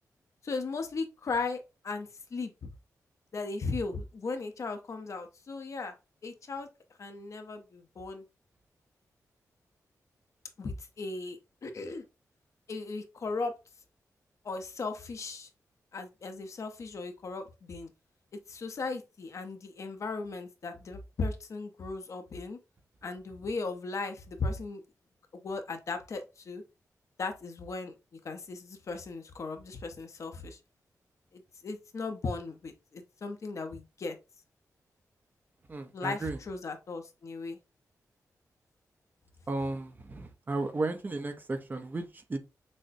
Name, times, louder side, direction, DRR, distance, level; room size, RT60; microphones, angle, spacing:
voice 1, 0.4-1.6 1.8-2.7 3.3-5.9 6.2-6.7 7.0-8.2 10.6-12.0 12.7-13.5 14.4-15.5 15.9-17.9 18.5-22.6 23.0-24.8 25.4-26.6 27.2-27.9 28.2-30.6 31.3-34.2 35.9-37.6, left 3 dB, 55° left, 0.7 m, -37 dB
voice 2, 35.7-36.4 39.5-42.4, right 2 dB, 30° right, 0.6 m, -34 dB
6.2 x 2.1 x 2.6 m
wide cardioid pair, 110°, 6 cm